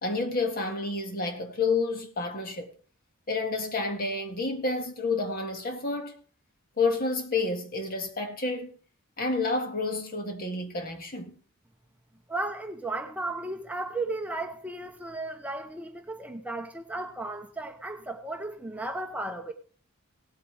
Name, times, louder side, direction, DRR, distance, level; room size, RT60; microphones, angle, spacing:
voice 1, 0.0-2.7 3.3-6.2 6.8-8.7 9.2-11.4, left 3 dB, 45° left, 1.9 m, -29 dB
voice 2, 12.3-19.5, right 2 dB, 5° right, 0.8 m, -35 dB
18.0 x 8.3 x 3.4 m
head